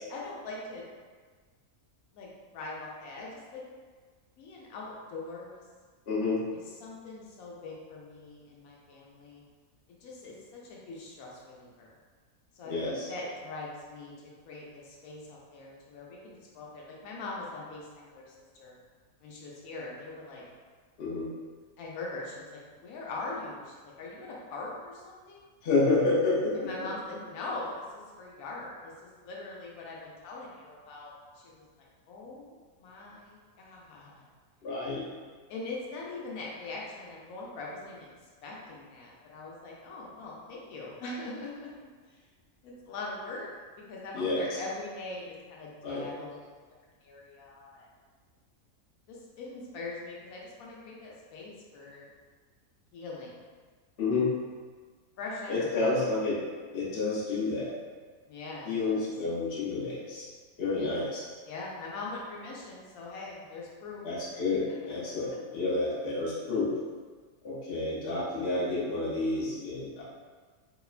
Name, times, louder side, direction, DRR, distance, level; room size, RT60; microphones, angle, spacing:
voice 1, 0.1-0.8 2.1-3.6 4.4-5.5 6.5-9.4 10.0-11.9 12.5-14.1 14.4-18.7 19.2-20.4 21.8-25.5 26.5-34.2 35.5-38.1 38.4-41.7 42.6-43.5 43.9-46.5 47.0-47.9 49.1-52.1 52.9-53.3 55.2-56.0 58.3-59.0 60.8-61.1 61.4-64.0, left 2 dB, 85° left, -4 dB, 1.0 m, -42 dB
voice 2, 6.1-6.4 12.7-13.1 21.0-21.3 25.6-26.5 34.6-35.0 44.1-44.6 45.8-46.0 54.0-54.3 55.5-56.4 56.7-57.7 58.6-60.3 60.6-61.2 64.0-66.7 67.4-70.0, left 3 dB, 55° left, -6 dB, 0.8 m, -29 dB
2.9 x 2.1 x 2.3 m, 1.5 s
omnidirectional pair, 1.5 m